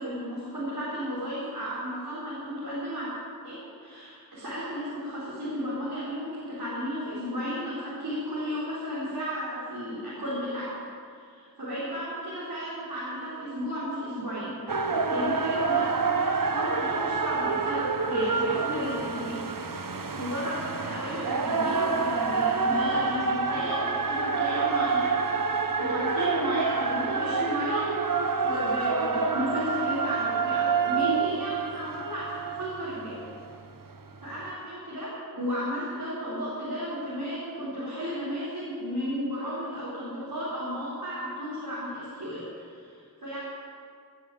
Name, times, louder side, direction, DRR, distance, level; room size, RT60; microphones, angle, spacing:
voice 1, 0.0-3.1 3.4-10.7 11.1-19.4 19.7-27.9 28.4-33.2 34.2-43.4, equal, 90° right, -10 dB, 4.4 m, -34 dB
sound 1, 14.7-33.6 34.2-34.3, right 4 dB, 65° right, 1.0 m, -27 dB
19.0 x 8.3 x 7.9 m, 2.2 s
wide cardioid pair, 45°, 35 cm